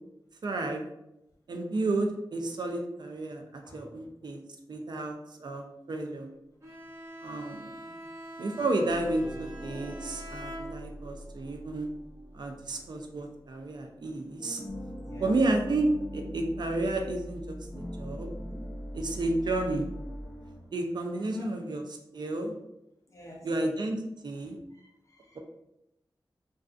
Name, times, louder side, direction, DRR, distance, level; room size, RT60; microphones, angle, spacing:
voice 1, 0.4-0.8 1.5-4.4 4.7-6.3 7.2-7.7 8.4-11.9 12.3-14.6 15.2-18.3 18.9-19.9 20.7-21.8 22.1-22.5 23.4-24.6, right 2 dB, 65° right, 3 dB, 0.4 m, -31 dB
Bowed string instrument, 6.6-11.2, equal, 40° right, 1.0 m, -44 dB
sound 1, 8.8-14.1 14.4-20.7, equal, 5° left, 0.9 m, -42 dB
voice 2, 14.9-15.4 17.8-17.9 21.1-21.5 23.1-23.5 24.7-25.4, left 2 dB, 40° left, -1 dB, 0.5 m, -49 dB
2.4 x 2.3 x 2.4 m, 0.85 s
wide cardioid pair, 105°, 8 cm